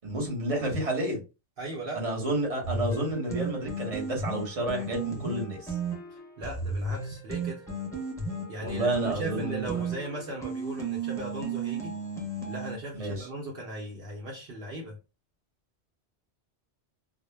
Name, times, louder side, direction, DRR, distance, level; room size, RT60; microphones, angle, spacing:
voice 1, 0.0-1.2 1.9-5.8 8.6-9.7 12.9-13.3, right 1 dB, 35° right, -1 dB, 0.9 m, -30 dB
voice 2, 1.6-2.0 6.1-7.7 8.5-12.0 12.5-15.0, right 2 dB, 60° right, -2 dB, 0.8 m, -38 dB
sound 1, 2.6-12.8, right 3 dB, 5° left, 0.5 m, -34 dB
2.1 x 2.0 x 3.1 m, 0.29 s
omnidirectional pair, 1.2 m